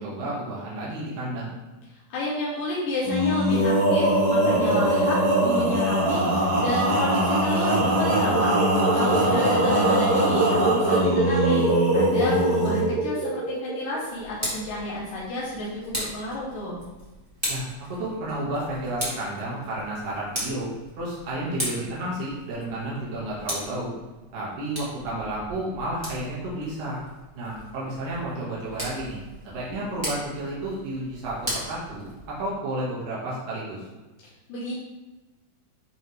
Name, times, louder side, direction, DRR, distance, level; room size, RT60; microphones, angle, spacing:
voice 1, 0.0-1.5 9.2-9.5 17.5-17.7 18.0-20.7 21.0-23.9 24.3-27.0 27.3-29.2 29.4-33.9, right 1 dB, 80° right, -7 dB, 3.2 m, -31 dB
voice 2, 2.1-8.6 8.9-16.8 34.5-34.7, left 1 dB, 80° left, -6 dB, 2.7 m, -31 dB
Male singing, 3.0-12.9, right 1 dB, 45° right, 1.3 m, -22 dB
sound 1, 7.5-14.0, right 2 dB, 60° right, 1.1 m, -26 dB
Tick, 14.1-32.5, equal, 10° right, 1.3 m, -38 dB
9.8 x 3.3 x 3.2 m, 1.2 s
omnidirectional pair, 3.9 m